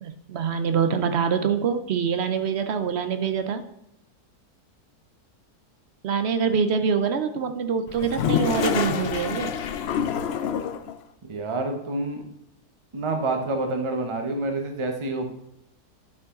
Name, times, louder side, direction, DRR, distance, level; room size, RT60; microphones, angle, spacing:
voice 1, 0.0-3.6 6.0-9.5, right 6 dB, 65° right, 8 dB, 0.6 m, -25 dB
Toilet flush, 7.9-11.0, left 8 dB, 85° left, 0.5 m, -26 dB
voice 2, 11.3-12.2 12.9-15.3, right 2 dB, 25° right, 4 dB, 0.8 m, -27 dB
11.0 x 4.9 x 3.7 m, 0.81 s
omnidirectional pair, 1.7 m